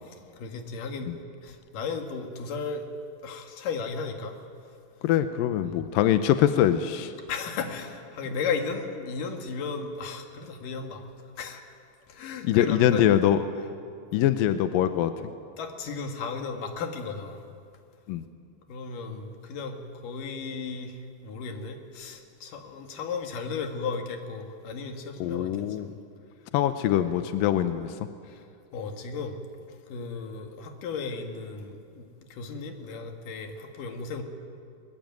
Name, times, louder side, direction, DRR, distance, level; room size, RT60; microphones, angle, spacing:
voice 1, 0.1-1.1 1.4-2.9 3.2-4.4 5.6-5.9 7.3-11.0 11.4-11.6 12.1-13.1 15.6-17.4 18.7-26.0 28.2-28.4 28.7-29.4 29.9-34.2, left 5 dB, 60° left, 5 dB, 3.2 m, -35 dB
voice 2, 5.0-7.1 12.4-13.4 14.1-15.1 18.1-18.2 25.2-25.9 26.5-27.9, left 11 dB, 80° left, 10 dB, 2.1 m, -23 dB
22.0 x 21.5 x 9.3 m, 2.4 s
omnidirectional pair, 4.9 m